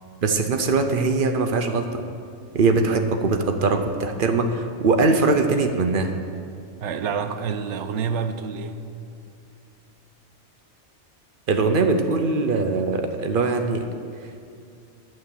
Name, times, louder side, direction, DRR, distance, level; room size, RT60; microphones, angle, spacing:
voice 1, 0.2-2.0 2.5-6.2 11.5-13.9, right 3 dB, 50° right, 6 dB, 0.7 m, -21 dB
voice 2, 6.8-8.8, right 6 dB, 70° right, 9 dB, 1.0 m, -28 dB
9.9 x 6.2 x 7.2 m, 2.5 s
omnidirectional pair, 1.3 m